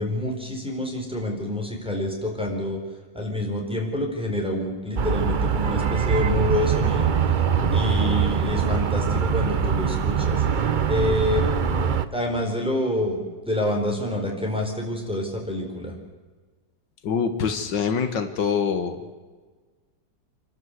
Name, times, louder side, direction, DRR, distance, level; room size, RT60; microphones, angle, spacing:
voice 1, 0.0-2.8 3.1-7.1 7.7-10.4 10.9-11.4 12.1-15.9, left 1 dB, 5° right, -1 dB, 4.4 m, -27 dB
sound 1, 5.0-12.1, right 7 dB, 75° right, 0.4 m, -23 dB
voice 2, 17.0-19.0, left 6 dB, 75° left, 8 dB, 2.0 m, -24 dB
27.5 x 12.5 x 8.1 m, 1.4 s
omnidirectional pair, 1.9 m